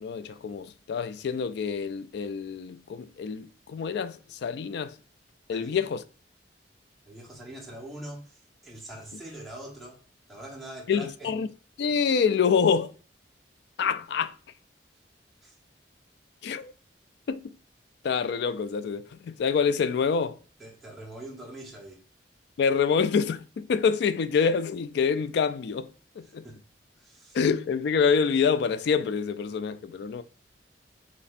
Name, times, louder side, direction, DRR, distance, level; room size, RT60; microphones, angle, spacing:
voice 1, 0.0-5.0 5.5-6.0 10.9-11.5 11.8-12.9 13.8-14.3 16.4-16.7 17.3-17.6 18.0-20.4 22.6-26.5 27.3-30.2, left 6 dB, 65° left, 0.3 m, -26 dB
voice 2, 5.5-5.8 7.0-10.0 10.3-11.3 15.4-15.6 20.6-22.0 26.2-26.6 27.0-27.4, right 1 dB, ahead, 1.1 m, -43 dB
4.1 x 3.0 x 2.6 m
head